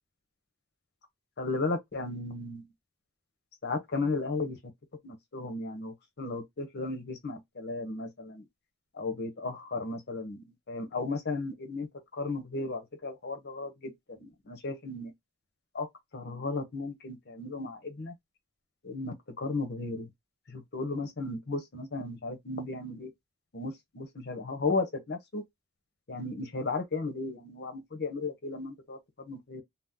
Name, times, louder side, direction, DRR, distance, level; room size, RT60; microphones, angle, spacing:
voice 1, 1.4-2.7 3.6-4.6 5.0-8.4 8.9-15.1 15.7-15.9 16.1-18.1 18.8-20.1 20.5-23.1 23.5-25.4 26.1-29.6, left 3 dB, 55° left, 0.9 m, -35 dB
2.8 x 2.1 x 3.6 m
head